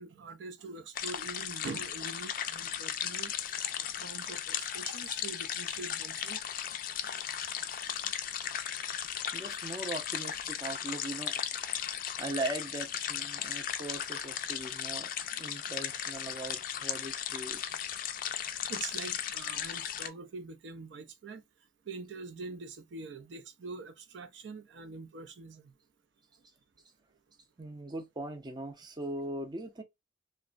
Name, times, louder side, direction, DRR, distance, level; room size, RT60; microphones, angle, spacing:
voice 1, 0.0-3.3 3.8-6.4 7.6-8.0 8.5-8.6 9.0-9.1 18.7-21.4 21.9-25.7, right 4 dB, 80° right, 0.4 m, -44 dB
sound 1, 0.9-20.1, left 9 dB, 50° left, 0.3 m, -36 dB
voice 2, 9.3-11.4 12.2-15.1 15.4-17.6 27.6-29.8, right 2 dB, 25° right, 0.4 m, -39 dB
3.0 x 2.1 x 2.4 m
head